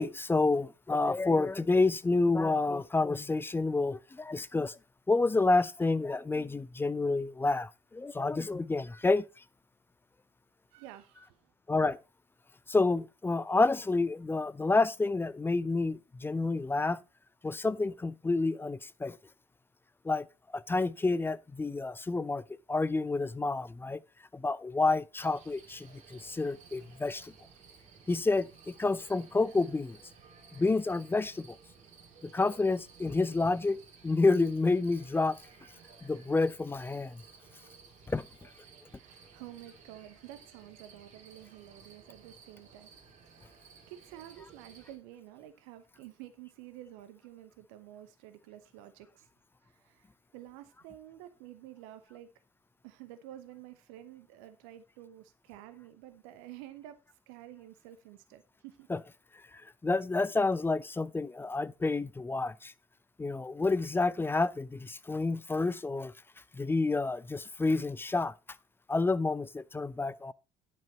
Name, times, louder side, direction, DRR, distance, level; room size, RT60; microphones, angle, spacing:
voice 1, 0.0-4.8 5.1-9.2 11.7-12.0 12.7-17.0 17.4-19.2 20.0-20.3 20.5-22.4 22.7-24.0 24.3-27.3 28.1-30.0 30.6-31.6 32.2-35.4 36.0-37.2 38.1-38.3 58.9-59.0 59.8-62.7 63.2-66.1 66.5-68.3 68.9-70.3, left 3 dB, 10° left, 0.5 m, -29 dB
voice 2, 10.7-11.4 39.0-42.9 43.9-49.3 49.8-50.0 50.3-52.3 52.8-57.0 57.3-58.9, right 13 dB, 60° right, 0.9 m, -50 dB
sound 1, 25.2-45.0, right 5 dB, 45° right, 2.4 m, -56 dB
10.5 x 5.3 x 4.2 m
figure-of-eight pair, 55°, 18 cm